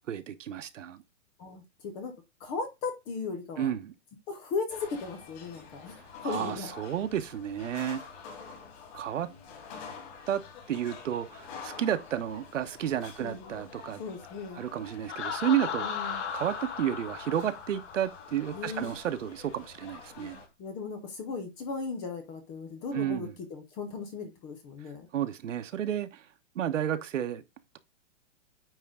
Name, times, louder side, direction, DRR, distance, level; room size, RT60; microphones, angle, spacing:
voice 1, 0.1-1.0 3.6-3.9 6.2-8.0 8.9-9.3 10.3-10.4 10.7-14.0 14.5-16.0 16.3-20.4 22.9-23.3 25.1-26.3 26.5-27.4, right 10 dB, 80° right, 1.2 m, -31 dB
voice 2, 1.4-2.1 2.4-3.7 4.3-6.7 13.2-13.7 14.0-14.6 15.8-16.2 18.5-18.9 20.2-25.1, left 4 dB, 10° left, 0.4 m, -37 dB
sound 1, 4.7-20.5, left 5 dB, 40° left, 3.7 m, -48 dB
Laughter, 15.1-18.8, left 6 dB, 70° left, 2.4 m, -36 dB
9.3 x 3.7 x 3.7 m
hypercardioid pair, 160°, 36 cm